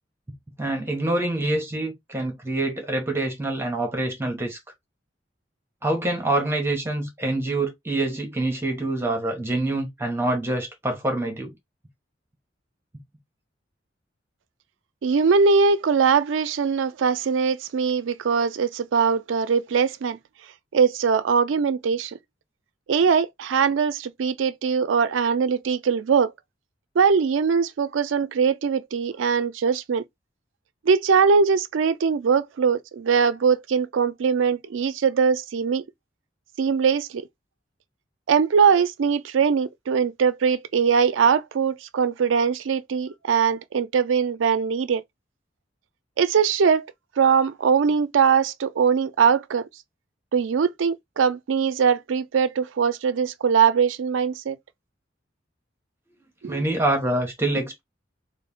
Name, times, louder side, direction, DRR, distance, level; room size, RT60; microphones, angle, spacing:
voice 1, 0.6-4.6 5.8-11.6 56.5-57.8, right 2 dB, 15° right, 1.2 m, -26 dB
voice 2, 15.0-20.2 20.7-22.2 22.9-26.3 27.0-30.0 30.8-35.8 36.6-37.2 38.3-45.0 46.2-46.9 47.2-49.7 50.3-54.6 56.4-56.6, right 6 dB, 90° right, 0.4 m, -21 dB
3.3 x 2.6 x 3.6 m
head